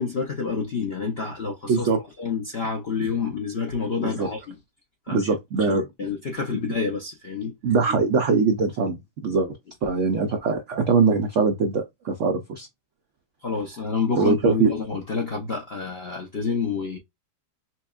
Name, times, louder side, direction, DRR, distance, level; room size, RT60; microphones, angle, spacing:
voice 1, 0.0-1.9 2.2-4.5 5.1-5.3 5.6-7.5 13.4-17.0, left 5 dB, 75° left, 0.5 m, -28 dB
voice 2, 1.7-2.0 4.0-4.3 5.1-5.8 7.6-9.6 9.8-12.7 14.1-14.7, right 4 dB, 85° right, 0.6 m, -22 dB
5.7 x 2.2 x 2.3 m
omnidirectional pair, 2.0 m